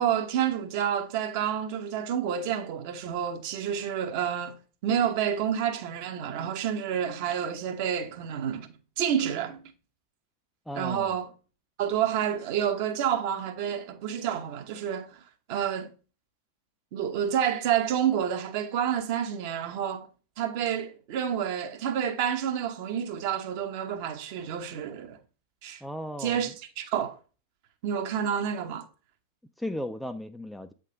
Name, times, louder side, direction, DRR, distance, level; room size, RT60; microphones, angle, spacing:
voice 1, 0.0-4.5 4.8-8.7 9.0-9.6 10.7-11.3 11.8-15.2 15.5-15.9 16.9-20.1 20.4-25.2 25.6-25.8 26.2-27.2 27.8-28.9, right 9 dB, 45° right, 0.9 m, -29 dB
voice 2, 10.7-11.1 25.8-26.5 29.6-30.7, left 1 dB, ahead, 0.4 m, -35 dB
8.1 x 3.8 x 3.9 m
figure-of-eight pair, 90°, 0 cm